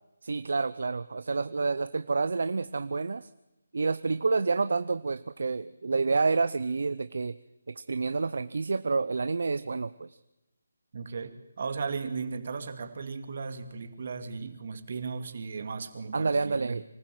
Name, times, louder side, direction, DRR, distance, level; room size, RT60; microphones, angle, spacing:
voice 1, 0.2-3.3 3.7-7.3 7.7-10.2 16.1-16.8, right 4 dB, 65° right, 14 dB, 0.6 m, -29 dB
voice 2, 10.9-16.8, right 5 dB, 50° right, 8 dB, 2.3 m, -36 dB
25.0 x 14.5 x 7.6 m, 1.0 s
figure-of-eight pair, 160°, 0 cm